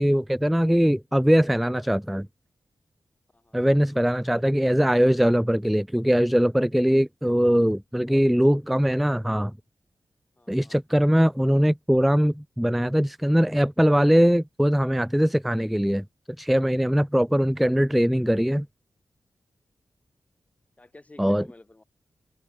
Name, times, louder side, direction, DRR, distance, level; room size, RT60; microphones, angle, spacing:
voice 1, 0.0-2.3 3.5-9.5 10.5-16.0 16.4-18.7 21.2-21.4, equal, ahead, 0.3 m, -21 dB
voice 2, 3.3-4.1 8.1-8.5 10.4-10.8 17.9-18.1 20.8-21.8, left 2 dB, 20° left, 3.8 m, -52 dB
open air
wide cardioid pair, 160°, 7 cm